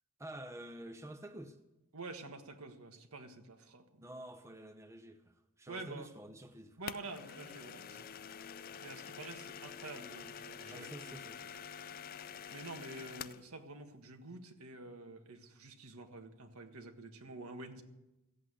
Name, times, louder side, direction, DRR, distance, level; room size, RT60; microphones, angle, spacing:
voice 1, 0.2-1.6 4.0-6.8 10.7-11.5, right 1 dB, 15° right, 0.8 m, -49 dB
voice 2, 1.9-4.0 5.7-6.1 6.8-8.1 8.8-11.1 12.5-17.8, right 2 dB, 75° right, 1.6 m, -48 dB
sound 1, 6.9-13.5, left 7 dB, 40° left, 0.4 m, -47 dB
15.5 x 8.2 x 8.2 m
head